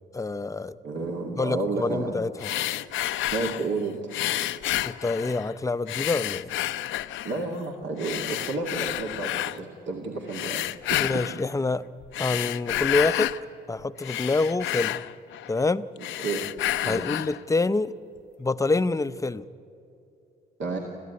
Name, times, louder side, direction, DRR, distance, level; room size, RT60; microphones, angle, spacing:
voice 1, 0.1-0.8 1.4-2.5 4.8-6.5 11.0-11.8 12.2-13.3 13.7-15.0 15.5-15.9 16.8-18.0 18.4-19.4, left 3 dB, 15° left, 13 dB, 0.6 m, -26 dB
voice 2, 0.8-2.1 3.3-4.2 7.2-11.0 16.0-16.4 16.8-17.2 20.6-20.8, right 3 dB, 65° right, 0 dB, 2.3 m, -31 dB
sound 1, 2.4-3.7 4.1-5.5 5.9-7.4 8.0-9.6 10.3-11.4 12.0-13.4 13.8-15.6 16.0-17.4, left 13 dB, 75° left, 0.6 m, -30 dB
26.5 x 14.5 x 9.5 m, 2.7 s
cardioid pair, 90°, 20 cm